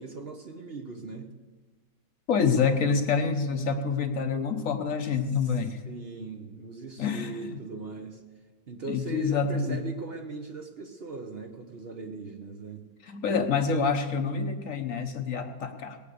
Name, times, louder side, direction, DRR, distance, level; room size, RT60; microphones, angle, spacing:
voice 1, 0.0-1.3 5.8-8.2 8.7-12.8, right 3 dB, 45° right, 4 dB, 1.0 m, -39 dB
voice 2, 2.3-5.8 7.0-7.6 8.9-9.8 13.0-16.0, left 5 dB, 60° left, 6 dB, 1.2 m, -27 dB
18.5 x 8.6 x 6.6 m, 1.4 s
omnidirectional pair, 1.7 m